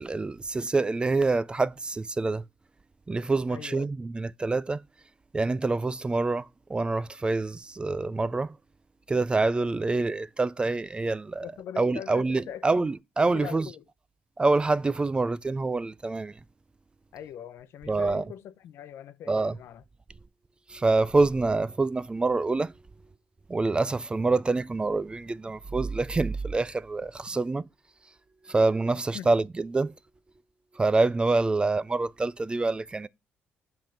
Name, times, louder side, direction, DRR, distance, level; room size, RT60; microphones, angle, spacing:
voice 1, 0.0-2.4 3.1-4.8 5.3-8.6 9.1-11.5 11.8-13.7 14.4-16.4 17.9-18.2 19.3-19.6 20.7-22.7 23.5-27.6 28.4-29.9 30.7-33.1, right 3 dB, 20° right, 0.4 m, -26 dB
voice 2, 3.5-3.9 11.4-12.9 13.2-13.8 17.1-19.8 29.1-29.3, left 10 dB, 70° left, 0.8 m, -42 dB
7.8 x 3.6 x 5.8 m
supercardioid pair, 65°, 4 cm